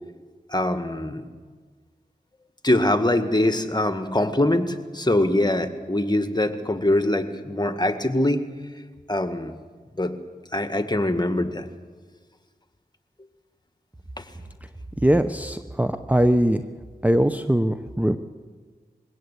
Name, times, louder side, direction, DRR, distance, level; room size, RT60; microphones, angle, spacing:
voice 1, 0.5-1.2 2.6-8.5 9.1-9.5 10.0-10.1 10.5-11.7, left 1 dB, 25° left, 8 dB, 1.9 m, -23 dB
voice 2, 15.0-16.6 17.0-18.2, equal, 10° right, 9 dB, 0.9 m, -21 dB
21.5 x 17.0 x 8.4 m, 1.5 s
cardioid pair, 45°, 17 cm